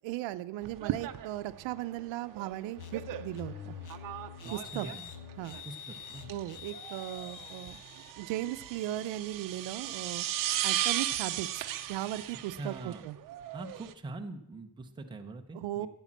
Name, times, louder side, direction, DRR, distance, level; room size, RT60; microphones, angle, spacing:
voice 1, 0.0-3.7 4.5-4.9 5.4-5.6 6.3-7.8 8.2-10.3 10.6-13.2 15.5-15.9, right 14 dB, 75° right, 12 dB, 0.8 m, -37 dB
sound 1, 0.6-13.9, right 12 dB, 45° right, 0.8 m, -37 dB
sound 2, 2.8-8.1, left 8 dB, 45° left, 1.0 m, -46 dB
voice 2, 4.4-5.1 5.6-6.3 12.6-13.1 13.5-15.9, right 2 dB, 10° right, 3 dB, 0.7 m, -43 dB
13.5 x 8.8 x 7.4 m, 0.81 s
cardioid pair, 175°, 45 cm